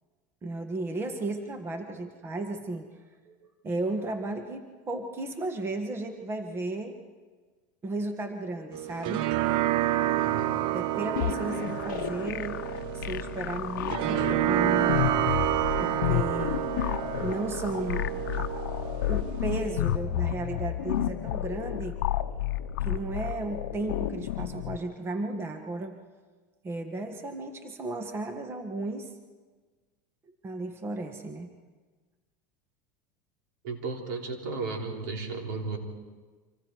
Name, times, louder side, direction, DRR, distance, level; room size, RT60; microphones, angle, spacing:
voice 1, 0.4-2.9 3.2-3.4 3.6-7.0 7.8-9.3 10.7-12.6 12.9-14.9 15.8-16.7 17.2-18.1 18.4-18.6 19.0-22.0 22.8-26.0 26.6-29.1 30.4-31.5, right 2 dB, 25° right, 6 dB, 1.6 m, -34 dB
sound 1, 8.7-19.7, right 14 dB, 55° right, 0.6 m, -29 dB
voice 2, 10.2-10.6 33.6-35.8, right 4 dB, 75° right, 2 dB, 3.7 m, -34 dB
sound 2, 11.2-24.8, left 13 dB, 85° left, 0.7 m, -31 dB
26.0 x 25.0 x 4.7 m, 1.4 s
supercardioid pair, 120°, 10 cm